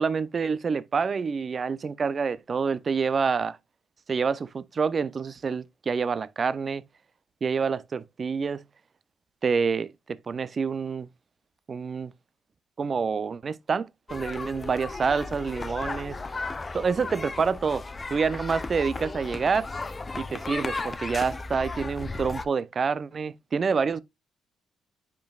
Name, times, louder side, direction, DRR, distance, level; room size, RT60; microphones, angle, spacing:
voice 1, 0.0-3.6 4.1-6.8 7.4-8.6 9.4-11.1 11.7-12.1 12.8-16.2 16.7-17.8 18.1-19.7 20.2-24.0, right 5 dB, 40° right, 0.4 m, -27 dB
sound 1, 14.1-22.4, left 3 dB, 25° left, 0.7 m, -35 dB
10.5 x 5.3 x 2.3 m
cardioid pair, 90°, 0 cm